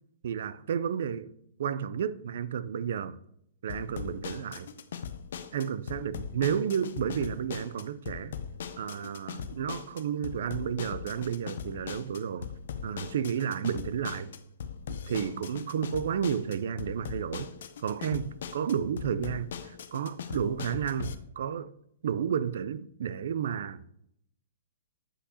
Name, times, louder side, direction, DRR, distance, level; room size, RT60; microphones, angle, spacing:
voice 1, 0.2-1.3 1.6-3.2 3.6-4.7 5.5-8.3 8.8-12.5 12.8-14.3 15.1-17.5 17.8-21.7 22.0-23.8, right 8 dB, 60° right, 0.4 m, -32 dB
sound 1, 3.7-21.1, left 7 dB, 65° left, 0.6 m, -40 dB
8.2 x 5.6 x 2.8 m
hypercardioid pair, 165°, 0 cm